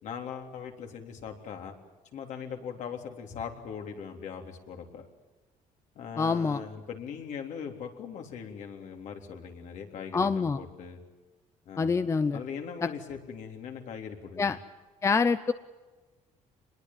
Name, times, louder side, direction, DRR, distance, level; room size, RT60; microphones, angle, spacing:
voice 1, 0.0-1.7 2.1-5.1 6.0-11.0 11.7-12.0 12.3-14.6, left 7 dB, 65° left, 3 dB, 3.5 m, -40 dB
voice 2, 6.2-6.6 10.1-10.6 11.8-12.4 14.4-14.6 15.0-15.5, left 4 dB, 20° left, 12 dB, 0.7 m, -26 dB
25.5 x 21.5 x 7.4 m, 1.2 s
cardioid pair, 130°, 14 cm